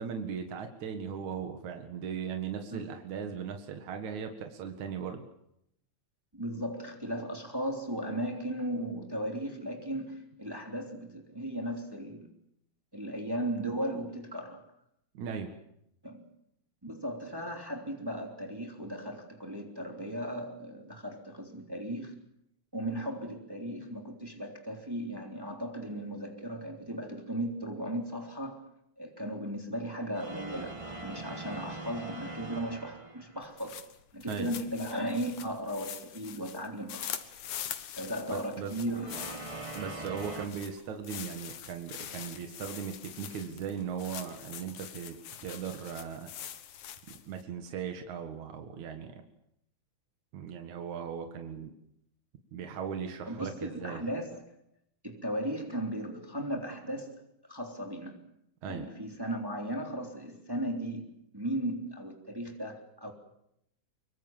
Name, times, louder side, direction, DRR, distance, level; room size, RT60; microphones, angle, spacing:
voice 1, 0.0-5.2 15.1-15.5 34.3-34.5 38.3-38.7 39.8-46.3 47.1-49.2 50.3-51.7 52.5-54.0 58.6-58.9, right 7 dB, 70° right, 3.1 m, -38 dB
voice 2, 6.3-12.3 12.9-14.6 16.0-16.2 16.8-22.2 22.7-28.6 29.0-33.8 34.1-37.2 38.0-39.4 53.3-54.4 55.0-57.2 57.5-58.2 58.7-63.1, right 1 dB, 5° right, 3.0 m, -36 dB
sound 1, 30.1-33.5 39.0-40.5, right 2 dB, 30° right, 0.5 m, -42 dB
sound 2, 33.4-47.4, left 10 dB, 75° left, 2.7 m, -44 dB
24.5 x 24.0 x 7.3 m
omnidirectional pair, 3.5 m